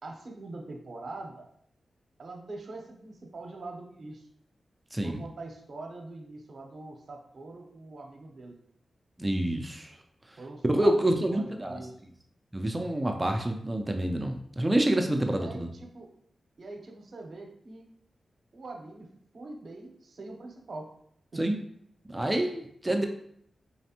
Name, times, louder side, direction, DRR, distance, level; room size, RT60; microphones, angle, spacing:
voice 1, 0.0-1.5 2.2-4.3 5.0-8.5 10.4-11.9 15.3-16.1 16.6-17.8 18.5-20.9 21.3-21.4 22.9-23.1, right 2 dB, 60° right, 2 dB, 0.8 m, -43 dB
voice 2, 4.9-5.2 9.2-10.0 10.7-11.8 12.5-15.7 21.4-21.6 22.1-23.1, right 1 dB, 20° right, 4 dB, 0.5 m, -27 dB
4.2 x 3.1 x 2.9 m, 0.68 s
cardioid pair, 65°, 0 cm